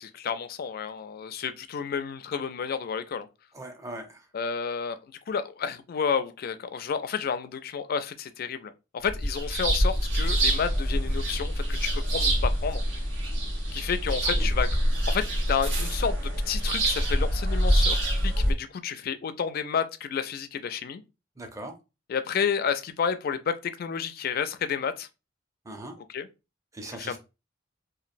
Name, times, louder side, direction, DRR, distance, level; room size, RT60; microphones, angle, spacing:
voice 1, 0.0-3.3 4.3-5.0 5.3-12.8 13.7-14.7 15.1-21.0 22.1-25.1 26.1-26.3 26.8-27.2, left 6 dB, 50° left, 0.4 m, -31 dB
voice 2, 3.5-4.3 14.2-14.5 21.4-21.7 25.6-25.9 26.7-27.2, right 1 dB, 15° right, 0.5 m, -40 dB
sound 1, 9.0-18.5, equal, 80° right, 1.1 m, -25 dB
3.0 x 2.5 x 2.5 m
head